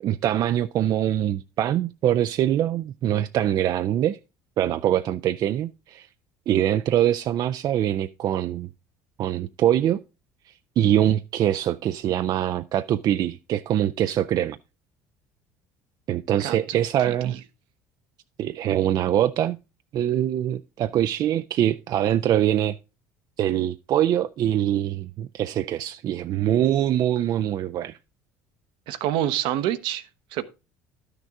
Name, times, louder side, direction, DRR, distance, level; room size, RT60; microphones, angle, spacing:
voice 1, 0.0-4.2 4.6-6.1 6.5-8.7 9.2-10.0 10.5-14.6 16.1-17.4 18.4-19.6 19.9-22.8 23.4-28.0, right 11 dB, 50° right, 0.4 m, -23 dB
voice 2, 16.4-16.8 17.1-17.3 28.9-30.0 30.3-30.4, right 12 dB, 70° right, 0.8 m, -27 dB
11.5 x 6.5 x 3.6 m
supercardioid pair, 80°, 9 cm